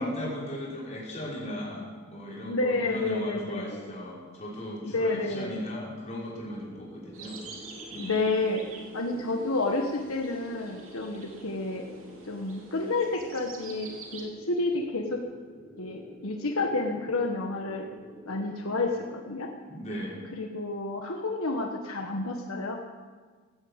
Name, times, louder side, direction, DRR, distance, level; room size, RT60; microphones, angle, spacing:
voice 1, 0.0-7.4 7.9-8.2 19.7-20.3, left 1 dB, 35° left, -5 dB, 5.0 m, -37 dB
voice 2, 2.4-3.8 4.8-5.6 8.0-8.6 8.9-11.8 12.3-15.2 15.8-17.9 18.3-19.5 20.3-22.8, left 2 dB, 85° left, 2 dB, 1.4 m, -30 dB
sound 1, 6.4-19.1, equal, 5° right, 3.0 m, -48 dB
sound 2, 7.1-14.2, right 4 dB, 75° right, 2.7 m, -47 dB
16.5 x 9.8 x 8.1 m, 1.5 s
head